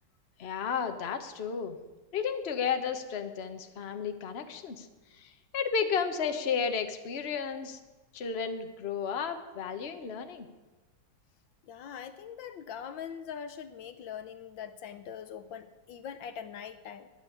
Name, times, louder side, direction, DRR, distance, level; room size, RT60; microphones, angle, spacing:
voice 1, 0.4-1.8 2.1-4.9 5.2-7.8 8.1-10.5, left 6 dB, 35° left, 7 dB, 1.2 m, -33 dB
voice 2, 11.6-17.1, left 8 dB, 75° left, 10 dB, 1.5 m, -42 dB
14.0 x 9.8 x 9.8 m, 1.2 s
omnidirectional pair, 2.2 m